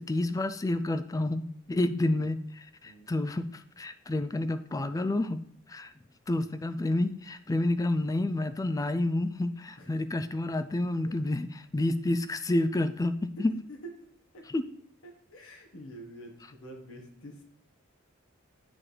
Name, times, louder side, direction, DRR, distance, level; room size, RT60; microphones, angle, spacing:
voice 1, 0.0-5.4 5.7-5.9 6.3-13.5 14.5-14.7, left 2 dB, 15° left, 11 dB, 0.3 m, -29 dB
voice 2, 15.0-17.4, equal, 80° left, 2 dB, 1.4 m, -48 dB
9.8 x 4.3 x 3.3 m, 0.63 s
head